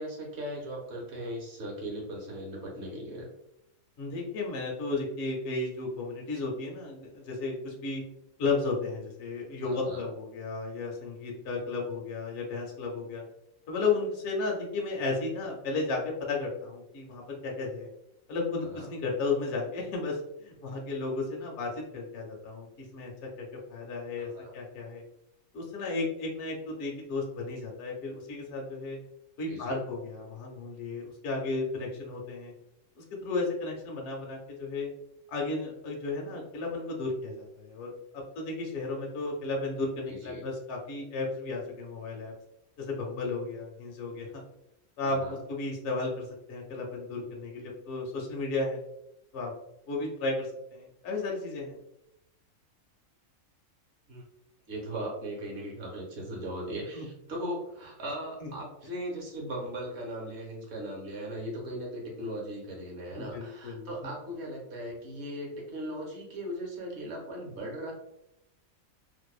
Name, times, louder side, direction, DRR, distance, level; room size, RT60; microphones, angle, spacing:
voice 1, 0.0-3.3 9.6-10.1 18.7-18.9 24.2-24.5 29.5-29.8 40.1-40.5 45.0-45.4 54.1-54.2 54.7-67.9, equal, 55° right, -1 dB, 1.0 m, -38 dB
voice 2, 4.0-8.0 8.4-13.2 13.7-17.9 18.3-23.1 23.4-25.0 25.5-29.0 29.4-32.5 33.0-34.9 35.3-42.3 42.8-44.3 45.0-48.8 49.3-49.5 49.9-51.8 56.9-57.1 58.4-58.5 63.2-63.9, left 3 dB, 65° left, -1 dB, 0.8 m, -34 dB
2.6 x 2.1 x 2.3 m, 0.81 s
omnidirectional pair, 1.5 m